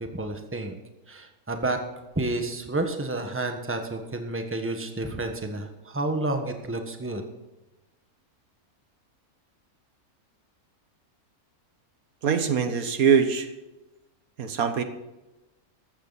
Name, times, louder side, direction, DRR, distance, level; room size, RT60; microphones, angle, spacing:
voice 1, 0.1-0.8 1.1-1.8 2.1-7.2, right 2 dB, 10° right, 5 dB, 1.3 m, -30 dB
voice 2, 12.2-13.5 14.4-14.8, right 6 dB, 70° right, 9 dB, 1.6 m, -22 dB
15.0 x 13.0 x 4.1 m, 1.1 s
omnidirectional pair, 1.6 m